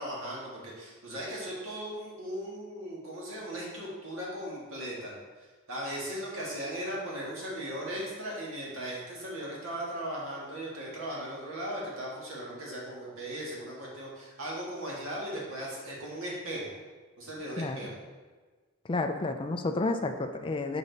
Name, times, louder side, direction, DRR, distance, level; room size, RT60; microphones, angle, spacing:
voice 1, 0.0-5.1 5.7-16.7 17.2-18.0, right 1 dB, 60° right, -4 dB, 1.8 m, -37 dB
voice 2, 18.9-20.8, left 2 dB, 25° left, 6 dB, 0.4 m, -30 dB
7.2 x 5.0 x 4.0 m, 1.3 s
head